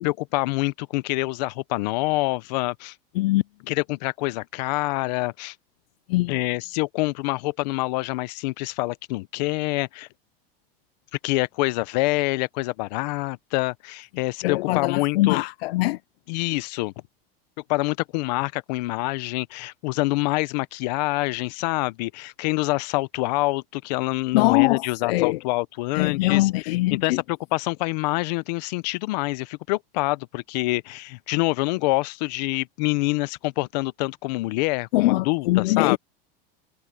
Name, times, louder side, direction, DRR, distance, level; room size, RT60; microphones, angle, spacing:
voice 1, 0.0-2.9 3.7-5.5 6.3-10.1 11.2-15.4 16.3-16.9 17.7-26.5 26.9-36.0, left 22 dB, 45° left, 0.7 m, -26 dB
voice 2, 14.4-16.0 24.3-25.4 26.0-27.2 34.9-36.0, left 19 dB, 90° left, 0.4 m, -22 dB
supercardioid pair, 175°, 29 cm